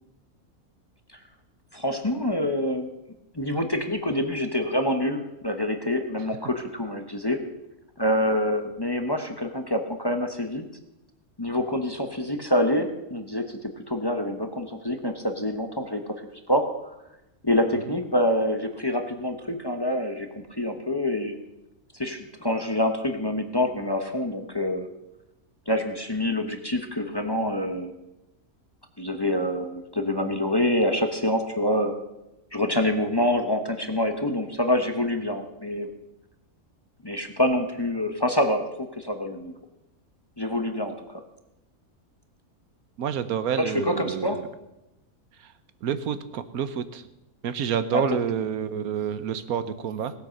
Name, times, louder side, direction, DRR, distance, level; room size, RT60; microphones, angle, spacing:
voice 1, 1.7-2.9 3.3-7.4 8.0-10.6 11.4-13.6 13.9-16.0 16.5-16.9 17.4-21.3 21.9-24.9 25.7-27.9 29.0-31.9 32.5-35.9 37.0-38.6 39.0-39.5 40.4-41.2 43.6-44.4 47.9-48.0, left 1 dB, 20° left, 5 dB, 1.0 m, -26 dB
voice 2, 43.0-44.5 45.4-45.5 45.8-47.1 47.4-50.1, right 8 dB, 85° right, 12 dB, 1.3 m, -28 dB
18.0 x 8.4 x 6.4 m, 0.92 s
omnidirectional pair, 1.5 m